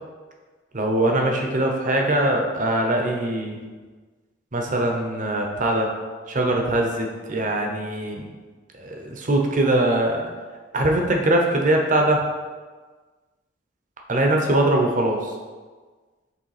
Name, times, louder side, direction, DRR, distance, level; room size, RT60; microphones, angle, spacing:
voice 1, 0.7-3.6 4.5-5.9 6.3-8.3 8.8-10.3 10.7-12.2 14.1-15.3, right 1 dB, 45° right, 1 dB, 0.9 m, -22 dB
6.7 x 3.3 x 4.9 m, 1.4 s
head